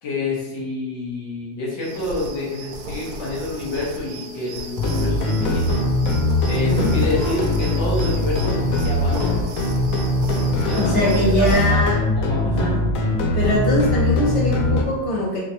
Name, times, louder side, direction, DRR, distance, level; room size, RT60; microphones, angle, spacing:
voice 1, 0.0-5.8 6.5-8.5 8.8-9.3 10.7-12.7, left 2 dB, 70° left, -5 dB, 1.8 m, -28 dB
sound 1, 1.8-11.7, right 2 dB, 80° right, 0.7 m, -35 dB
sound 2, 4.8-14.8, left 2 dB, 90° left, 0.7 m, -21 dB
voice 2, 6.5-6.9 10.7-12.0 12.4-12.8 13.3-15.4, left 1 dB, 60° right, -9 dB, 0.3 m, -22 dB
4.2 x 2.9 x 2.7 m, 1.1 s
omnidirectional pair, 2.1 m